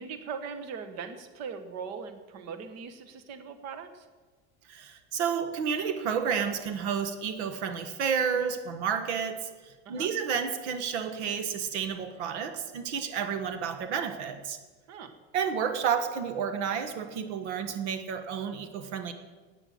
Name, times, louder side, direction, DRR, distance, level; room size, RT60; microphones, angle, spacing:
voice 1, 0.0-4.1 9.8-10.1 14.9-15.2, right 6 dB, 50° right, 9 dB, 1.4 m, -40 dB
voice 2, 4.7-14.6 15.3-19.1, right 7 dB, 85° right, 9 dB, 1.3 m, -31 dB
10.0 x 9.1 x 8.4 m, 1.3 s
supercardioid pair, 130°, 33 cm